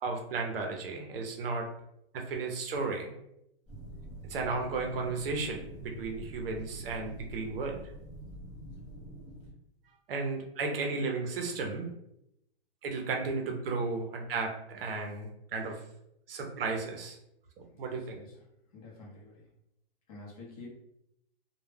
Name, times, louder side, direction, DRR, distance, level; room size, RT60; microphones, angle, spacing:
voice 1, 0.0-1.7 2.1-3.1 4.3-7.8 10.1-11.9 12.8-15.8 16.3-17.2 17.6-18.2, right 4 dB, 60° right, 2 dB, 0.6 m, -34 dB
sound 1, 3.7-9.5, right 1 dB, 5° right, 0.3 m, -46 dB
voice 2, 17.7-18.4 18.7-19.5 20.1-20.7, left 2 dB, 35° left, -4 dB, 0.7 m, -49 dB
2.1 x 2.1 x 3.2 m, 0.79 s
hypercardioid pair, 165°, 32 cm